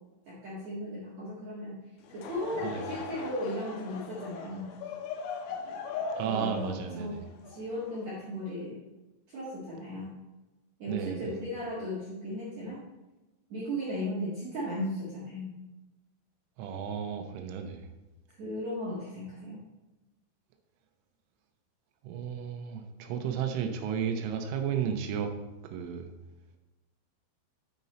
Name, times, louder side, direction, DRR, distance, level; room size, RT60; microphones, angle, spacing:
voice 1, 0.3-1.8 2.1-4.7 6.2-7.2 7.5-8.8 9.3-10.1 10.8-12.8 13.5-15.6 18.3-19.6, left 1 dB, 60° right, -8 dB, 1.9 m, -36 dB
Laughter / Crowd, 2.0-8.4, left 5 dB, 85° left, 3.5 m, -40 dB
voice 2, 6.2-7.2 10.9-11.3 16.6-17.9 22.0-25.3 25.7-26.1, right 7 dB, 80° right, 5 dB, 3.2 m, -33 dB
9.5 x 5.3 x 4.2 m, 1.1 s
omnidirectional pair, 5.8 m